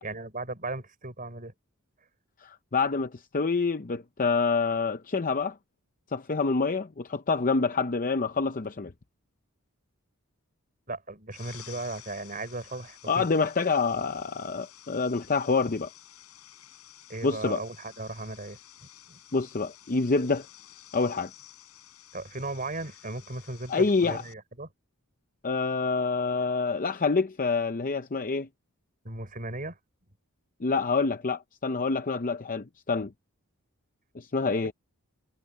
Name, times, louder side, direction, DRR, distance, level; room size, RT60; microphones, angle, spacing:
voice 1, 0.0-1.5 10.9-13.3 17.1-19.2 22.1-24.7 29.0-29.8, right 2 dB, 40° right, 5.2 m, -37 dB
voice 2, 2.4-5.5 6.1-8.9 13.1-15.9 17.2-17.6 19.3-20.5 20.9-21.3 23.7-24.2 25.4-28.5 30.6-33.1 34.1-34.7, left 4 dB, 40° left, 0.6 m, -27 dB
sound 1, 11.3-24.3, left 11 dB, 90° left, 5.2 m, -52 dB
head